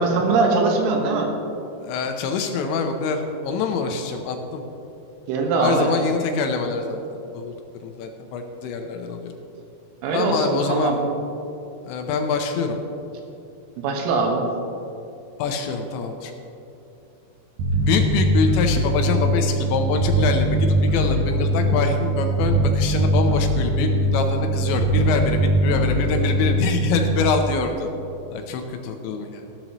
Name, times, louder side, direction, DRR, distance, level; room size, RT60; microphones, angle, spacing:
voice 1, 0.0-1.3 5.3-5.9 10.0-11.0 13.8-14.4, right 3 dB, 90° right, 1 dB, 3.9 m, -21 dB
voice 2, 1.8-4.6 5.6-7.5 7.8-9.3 10.1-11.1 11.8-12.8 15.4-16.3 17.8-27.9 28.3-29.4, left 5 dB, 80° left, 5 dB, 3.0 m, -25 dB
Bass guitar, 17.6-27.2, right 1 dB, 70° right, 2.4 m, -21 dB
15.0 x 12.0 x 3.0 m, 2.8 s
omnidirectional pair, 5.5 m